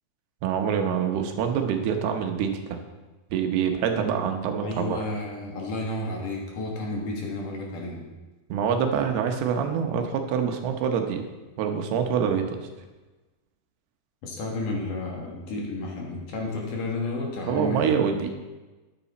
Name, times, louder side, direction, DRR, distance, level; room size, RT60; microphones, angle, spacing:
voice 1, 0.4-2.8 3.3-5.0 8.5-11.2 11.6-12.7 17.5-18.3, right 7 dB, 80° right, 5 dB, 3.1 m, -25 dB
voice 2, 4.6-8.0 14.2-18.0, left 2 dB, 60° left, -1 dB, 3.0 m, -31 dB
13.0 x 9.8 x 4.2 m, 1.2 s
omnidirectional pair, 4.5 m